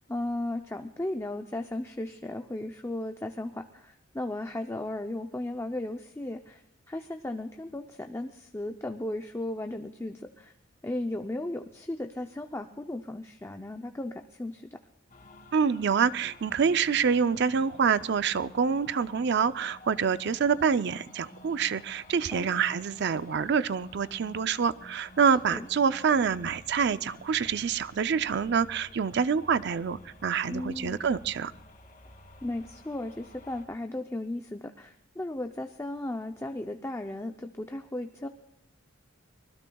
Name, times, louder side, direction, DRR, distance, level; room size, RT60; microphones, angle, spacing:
voice 1, 0.0-10.5 10.8-14.8 22.3-22.5 25.5-25.7 30.5-31.0 32.4-38.3, left 1 dB, 15° left, 5 dB, 0.5 m, -35 dB
sound 1, 15.1-33.6, left 1 dB, 40° left, 2.5 m, -52 dB
voice 2, 15.5-31.5, right 6 dB, 55° right, 14 dB, 0.5 m, -26 dB
25.0 x 20.0 x 2.3 m, 0.85 s
head